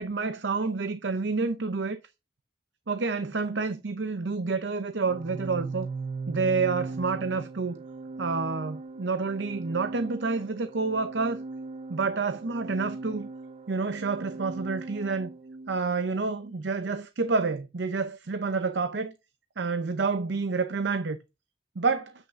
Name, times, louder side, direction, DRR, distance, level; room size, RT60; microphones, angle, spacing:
voice 1, 0.0-2.0 2.9-5.9 6.3-7.8 8.2-11.4 11.9-13.3 13.7-15.3 15.7-19.1 19.6-21.2 21.8-22.1, right 4 dB, 70° right, 0.7 m, -28 dB
Organ, 5.0-15.8, right 3 dB, 35° right, 0.5 m, -39 dB
8.5 x 6.3 x 3.6 m
head